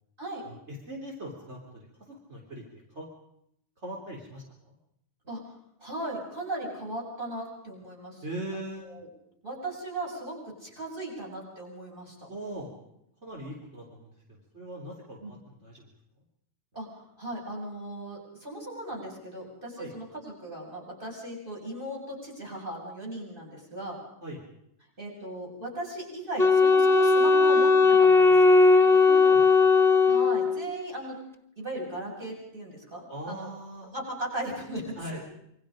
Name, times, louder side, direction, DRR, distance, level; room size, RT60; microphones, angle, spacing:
voice 1, 0.4-2.6 2.9-3.1 3.8-4.4 8.2-8.9 12.3-12.7 13.2-15.9 19.8-19.9 24.2-24.4 28.8-29.7 33.1-33.9 35.0-35.2, right 1 dB, 80° right, -2 dB, 4.1 m, -40 dB
voice 2, 5.8-8.2 8.8-9.1 9.4-12.3 15.2-15.3 16.7-24.0 25.0-28.6 30.1-31.2 31.6-33.5 33.9-35.2, right 1 dB, 50° right, -1 dB, 8.0 m, -37 dB
Wind instrument woodwind instrument, 26.4-30.8, left 4 dB, ahead, 1.1 m, -19 dB
27.5 x 24.5 x 5.2 m, 0.77 s
omnidirectional pair, 1.2 m